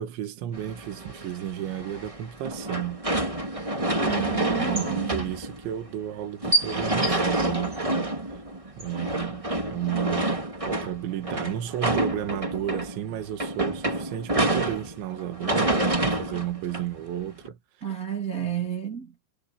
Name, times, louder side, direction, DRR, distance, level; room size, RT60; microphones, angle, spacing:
voice 1, 0.0-3.0 4.6-8.2 8.8-10.3 10.7-17.6 18.4-18.7, right 11 dB, 75° right, 4.2 m, -33 dB
sound 1, 0.5-17.5, right 1 dB, 15° right, 1.2 m, -28 dB
voice 2, 4.0-5.2 17.8-19.1, right 8 dB, 35° right, 1.4 m, -31 dB
omnidirectional pair, 5.4 m